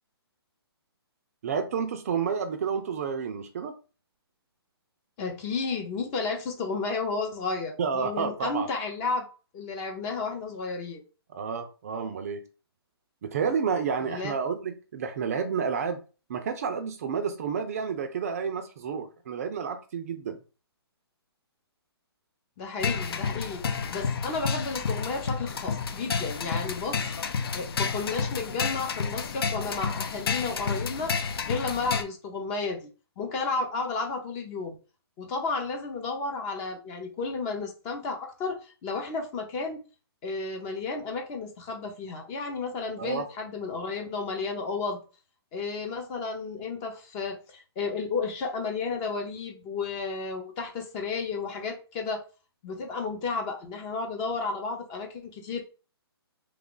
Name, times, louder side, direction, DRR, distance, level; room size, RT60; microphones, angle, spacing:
voice 1, 1.4-3.7 7.8-8.7 11.3-12.4 13.2-16.0 16.3-20.4 43.0-43.3, right 6 dB, 35° right, 0.4 m, -30 dB
voice 2, 5.2-9.3 9.5-11.0 14.1-14.3 22.6-27.1 27.5-32.9 33.2-34.7 35.2-39.8 40.2-45.0 45.5-52.2 52.6-55.6, left 4 dB, 20° left, 0.6 m, -32 dB
sound 1, 22.8-32.0, left 5 dB, 65° left, 0.5 m, -30 dB
2.9 x 2.3 x 3.7 m
hypercardioid pair, 160°, 14 cm